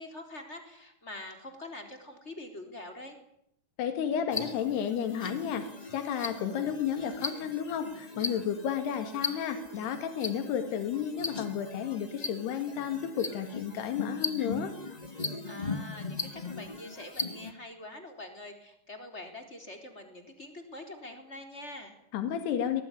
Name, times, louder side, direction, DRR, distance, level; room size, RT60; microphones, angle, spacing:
voice 1, 0.0-3.2 15.4-22.0, left 1 dB, 15° left, 5 dB, 3.9 m, -45 dB
voice 2, 3.8-5.7 5.9-14.7 22.1-22.8, left 8 dB, 90° left, 8 dB, 4.1 m, -32 dB
sound 1, 4.3-17.5, left 3 dB, 45° left, 0.5 m, -39 dB
23.0 x 20.0 x 10.0 m, 0.75 s
omnidirectional pair, 4.6 m